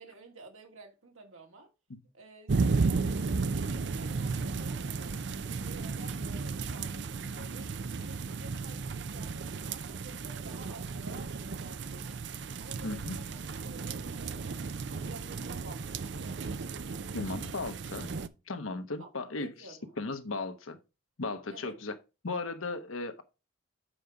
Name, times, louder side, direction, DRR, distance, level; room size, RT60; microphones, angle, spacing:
voice 1, 0.0-1.7 2.1-3.1 3.5-5.1 5.5-7.7 8.0-12.2 12.6-14.6 14.9-16.4 19.0-19.9 21.5-21.8, right 2 dB, 85° right, 2.4 m, -51 dB
sound 1, 2.5-18.3, right 4 dB, 55° right, 0.5 m, -34 dB
voice 2, 12.8-13.2 17.1-18.1 18.5-19.7 20.0-20.8 21.2-21.9 22.2-23.2, left 3 dB, 80° left, 1.1 m, -36 dB
7.7 x 5.2 x 4.7 m
head